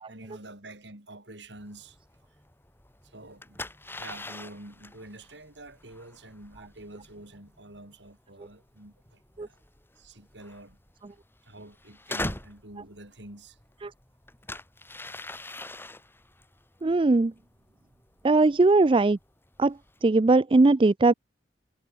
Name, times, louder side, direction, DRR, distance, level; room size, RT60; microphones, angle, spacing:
voice 1, 0.1-2.0 3.0-3.7 4.0-9.6 10.0-10.8 11.4-13.6 15.1-15.2, right 1 dB, 75° right, 6.7 m, -47 dB
sound 1, 1.6-20.0, left 2 dB, 10° left, 6.9 m, -43 dB
voice 2, 16.8-17.3 18.2-19.2 19.6-21.1, right 3 dB, 30° right, 0.4 m, -20 dB
head